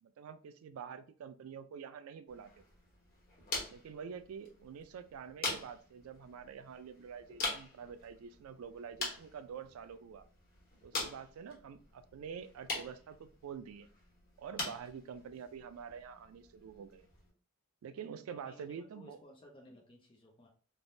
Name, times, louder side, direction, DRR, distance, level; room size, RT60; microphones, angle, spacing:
voice 1, 0.0-2.5 3.7-10.2 10.8-13.9 14.4-17.1 17.8-19.2, right 7 dB, 90° right, 11 dB, 0.3 m, -47 dB
sound 1, 2.3-17.3, left 3 dB, 45° left, 1.0 m, -44 dB
voice 2, 18.3-20.5, left 1 dB, 25° left, -1 dB, 0.5 m, -57 dB
3.2 x 2.1 x 2.6 m, 0.41 s
head